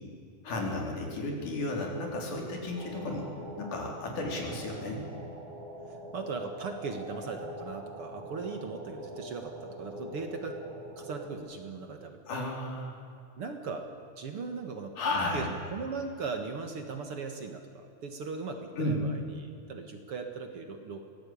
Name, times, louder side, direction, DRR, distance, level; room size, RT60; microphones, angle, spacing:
voice 1, 0.4-3.3 3.6-5.0 12.3-12.9 15.0-15.5 18.8-19.0, left 2 dB, 75° left, 0 dB, 5.4 m, -33 dB
sound 1, 2.8-11.4, right 1 dB, 70° right, 5.3 m, -43 dB
voice 2, 5.9-10.6 11.0-12.2 13.4-13.9 14.2-21.1, right 4 dB, 50° right, 5 dB, 2.3 m, -39 dB
23.5 x 17.5 x 8.6 m, 2.4 s
omnidirectional pair, 3.6 m